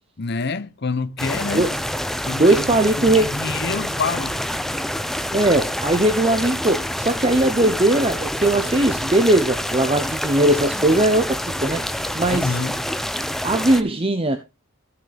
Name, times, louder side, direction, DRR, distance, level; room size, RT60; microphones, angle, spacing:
voice 1, 0.2-1.7 2.2-4.4 12.3-12.8, left 4 dB, 50° left, 0.8 m, -27 dB
sound 1, 1.2-13.8, equal, ahead, 0.5 m, -27 dB
voice 2, 2.3-3.4 5.3-12.6 13.4-14.4, right 1 dB, 25° right, 0.8 m, -19 dB
14.5 x 6.8 x 3.4 m
head